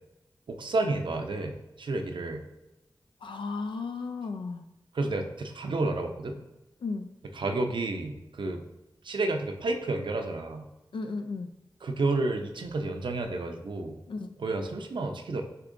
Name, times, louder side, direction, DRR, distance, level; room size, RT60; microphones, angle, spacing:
voice 1, 0.5-2.4 4.9-6.4 7.3-8.6 9.0-10.7 11.8-14.0 14.4-15.4, right 2 dB, 75° right, 4 dB, 0.6 m, -30 dB
voice 2, 3.2-4.7 6.8-7.1 10.9-11.5 14.1-14.3, left 4 dB, 80° left, 7 dB, 0.4 m, -34 dB
6.4 x 2.9 x 2.6 m, 1.0 s
cardioid pair, 50°, 8 cm